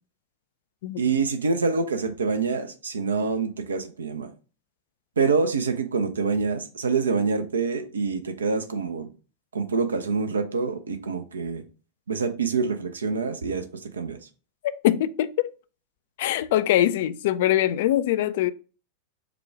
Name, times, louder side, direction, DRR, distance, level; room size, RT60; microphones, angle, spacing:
voice 1, 1.0-4.3 5.2-9.1 9.5-11.6 12.1-13.6 13.9-14.2, right 4 dB, 70° right, 0.6 m, -26 dB
voice 2, 14.8-15.5 16.2-18.5, left 13 dB, 55° left, 0.3 m, -22 dB
4.9 x 2.3 x 4.7 m
figure-of-eight pair, 90°, 0 cm